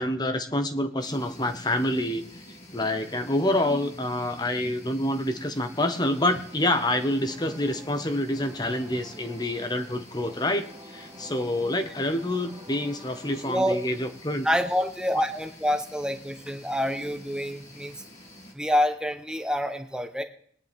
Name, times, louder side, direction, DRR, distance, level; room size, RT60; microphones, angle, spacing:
voice 1, 0.0-2.2 2.7-14.5, left 1 dB, 20° left, 8 dB, 1.1 m, -27 dB
sound 1, 1.0-18.5, left 1 dB, 40° left, 2.3 m, -48 dB
sound 2, 6.3-15.2, right 1 dB, 20° right, 1.4 m, -50 dB
voice 2, 13.5-13.8 14.4-17.9 18.5-20.2, equal, 5° right, 7 dB, 1.0 m, -27 dB
20.5 x 10.5 x 3.6 m, 0.62 s
head